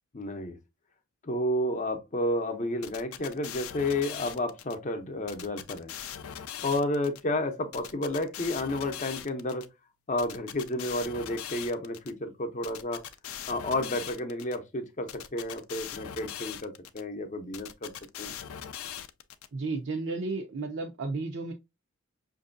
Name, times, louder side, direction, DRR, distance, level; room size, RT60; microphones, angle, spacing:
voice 1, 0.1-0.6 1.2-5.9 6.6-9.6 10.1-13.0 13.5-17.9 18.2-18.3, left 1 dB, 35° left, 0.7 m, -31 dB
sound 1, 2.8-4.7 5.3-7.2 7.7-9.6 10.2-12.1 12.6-14.6 15.1-17.0 17.5-19.5, left 10 dB, 80° left, 0.4 m, -40 dB
voice 2, 19.5-21.5, right 3 dB, 55° right, 0.6 m, -33 dB
5.9 x 2.6 x 2.5 m
head